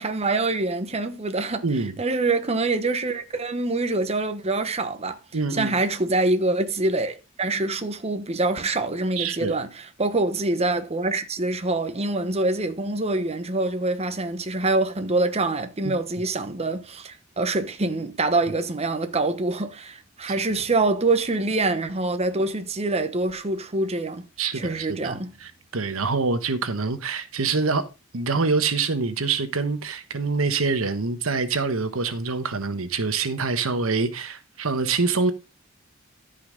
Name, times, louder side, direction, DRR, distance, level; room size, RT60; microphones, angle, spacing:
voice 1, 0.0-1.6 2.0-5.2 5.5-24.2 24.5-25.3, right 2 dB, 30° right, 1.1 m, -25 dB
voice 2, 1.6-2.0 5.3-5.7 9.2-9.6 15.8-15.9 24.4-27.8 28.1-35.3, right 4 dB, 90° right, 1.2 m, -25 dB
13.5 x 5.7 x 3.9 m
head